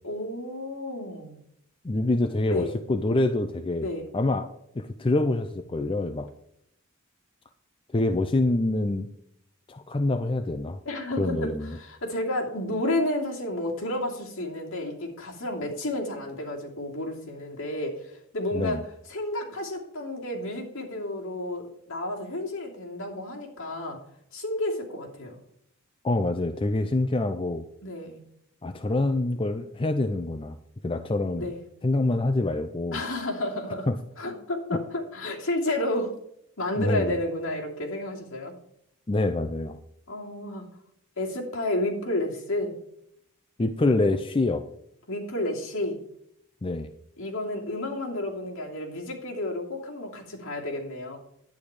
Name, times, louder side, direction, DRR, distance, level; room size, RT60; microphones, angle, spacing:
voice 1, 0.0-1.4 2.5-2.7 3.8-4.1 10.8-18.8 19.1-24.0 24.3-25.4 27.8-28.2 31.4-31.6 32.9-33.9 34.2-36.2 36.6-38.5 40.1-40.7 41.2-42.8 45.1-46.0 47.2-51.2, left 1 dB, 65° left, -1 dB, 2.8 m, -31 dB
voice 2, 1.8-3.9 4.1-6.3 7.9-9.1 9.7-10.8 11.2-11.8 18.5-18.8 26.0-27.6 28.6-30.6 30.8-31.5 31.8-33.0 33.9-34.0 36.8-37.2 39.1-39.8 43.6-44.7 46.6-46.9, left 2 dB, 25° left, 7 dB, 0.5 m, -26 dB
10.5 x 8.8 x 4.9 m, 0.74 s
head